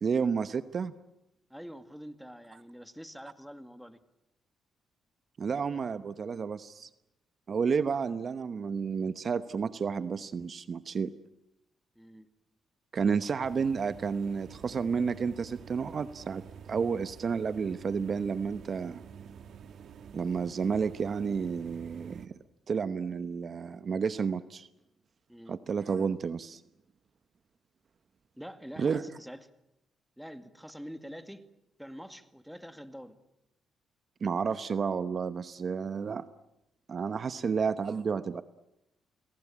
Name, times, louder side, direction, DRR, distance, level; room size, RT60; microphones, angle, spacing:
voice 1, 0.0-0.9 5.4-6.9 7.5-11.1 12.9-16.4 16.7-19.0 20.1-22.3 22.7-24.7 25.5-26.6 28.8-29.0 34.2-36.2 36.9-38.4, right 6 dB, 45° right, 12 dB, 1.0 m, -31 dB
voice 2, 1.5-4.0 12.0-12.3 25.3-25.6 28.4-29.5 30.2-31.5 31.8-33.2 37.3-37.6, equal, ahead, 9 dB, 2.1 m, -46 dB
sound 1, 13.4-22.3, right 7 dB, 65° right, 1.8 m, -49 dB
29.0 x 20.0 x 8.7 m, 0.88 s
cardioid pair, 90°, 0 cm